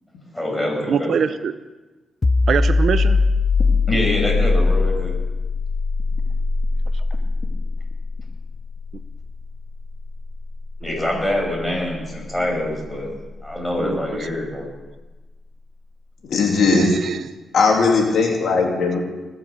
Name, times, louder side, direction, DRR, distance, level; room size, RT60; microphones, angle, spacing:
voice 1, 0.3-1.3 3.9-5.2 10.8-13.1 13.4-14.7, left 1 dB, 10° left, 6.1 m, -25 dB
voice 2, 0.9-1.5 2.5-3.2 6.9-7.0 13.8-14.0 16.6-17.3, right 7 dB, 60° right, 0.7 m, -23 dB
sound 1, 2.2-13.6, left 3 dB, 30° left, 0.7 m, -22 dB
voice 3, 16.3-16.9 17.5-19.0, left 4 dB, 65° left, 2.9 m, -18 dB
20.5 x 7.7 x 7.0 m
cardioid pair, 105°, 0 cm